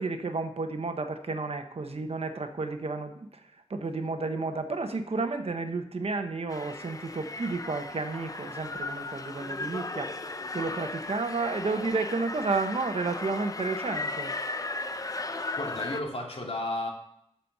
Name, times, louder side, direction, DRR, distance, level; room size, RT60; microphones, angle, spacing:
voice 1, 0.0-3.3 3.7-14.3, right 3 dB, 70° right, 7 dB, 1.0 m, -31 dB
sound 1, 6.5-16.0, left 3 dB, 35° left, 0.6 m, -36 dB
voice 2, 15.6-16.9, left 1 dB, 70° left, -1 dB, 2.4 m, -33 dB
7.4 x 7.0 x 6.6 m, 0.72 s
wide cardioid pair, 90°, 11 cm